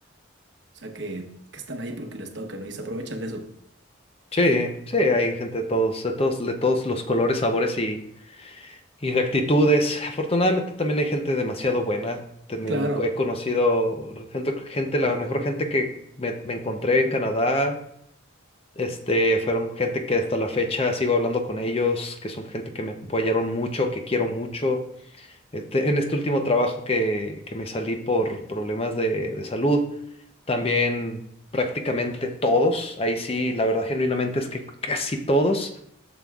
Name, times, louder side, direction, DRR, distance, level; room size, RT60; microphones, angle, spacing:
voice 1, 0.8-1.3 1.5-3.5 12.7-13.1, right 1 dB, 60° right, 4 dB, 1.0 m, -31 dB
voice 2, 4.3-8.0 8.4-8.8 9.0-12.2 12.5-17.8 18.8-24.9 25.2-25.3 25.5-29.9 30.5-31.2 31.5-35.8, left 1 dB, 30° left, 5 dB, 0.6 m, -24 dB
11.0 x 6.9 x 2.4 m, 0.70 s
head